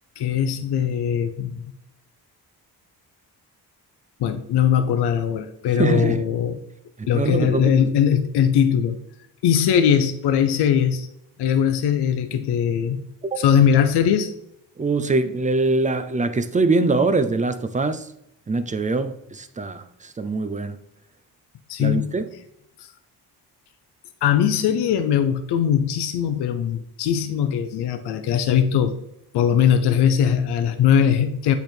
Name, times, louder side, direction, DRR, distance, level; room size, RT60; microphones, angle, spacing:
voice 1, 0.2-1.6 4.2-6.6 7.1-9.0 9.4-11.1 11.4-13.0 13.4-14.3 21.7-22.1 22.8-22.9 24.2-29.0 29.3-31.6, left 8 dB, 75° left, 0.6 m, -20 dB
voice 2, 5.8-6.2 7.0-7.9 13.2-13.4 14.8-18.1 18.5-20.8 21.8-22.3, right 3 dB, 20° right, 0.5 m, -23 dB
8.1 x 3.4 x 4.4 m
cardioid pair, 115°, 40 cm